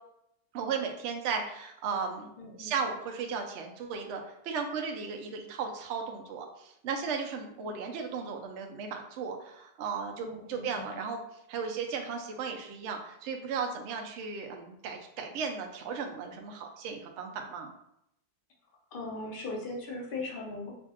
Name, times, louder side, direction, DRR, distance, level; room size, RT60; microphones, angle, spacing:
voice 1, 0.5-2.3 2.6-11.2 11.5-17.7, right 5 dB, 90° right, 3 dB, 0.6 m, -35 dB
voice 2, 2.4-2.7 7.6-7.7 10.2-10.9 18.9-20.7, left 2 dB, 45° left, -2 dB, 0.7 m, -39 dB
4.7 x 2.6 x 2.4 m, 0.78 s
omnidirectional pair, 1.9 m